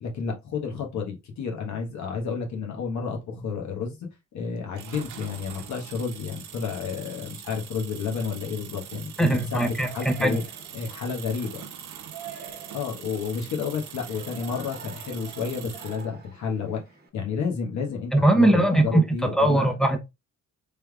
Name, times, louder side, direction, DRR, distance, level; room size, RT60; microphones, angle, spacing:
voice 1, 0.0-4.0 4.3-10.4 10.7-11.6 12.7-16.8 17.1-19.7, left 5 dB, 65° left, 1.2 m, -31 dB
sound 1, 4.8-16.1, right 9 dB, 85° right, 0.7 m, -43 dB
voice 2, 9.2-10.4 18.1-20.0, right 1 dB, ahead, 0.6 m, -21 dB
Yell, 9.4-17.1, right 5 dB, 30° right, 1.2 m, -46 dB
3.4 x 3.4 x 2.2 m
cardioid pair, 90°, 30 cm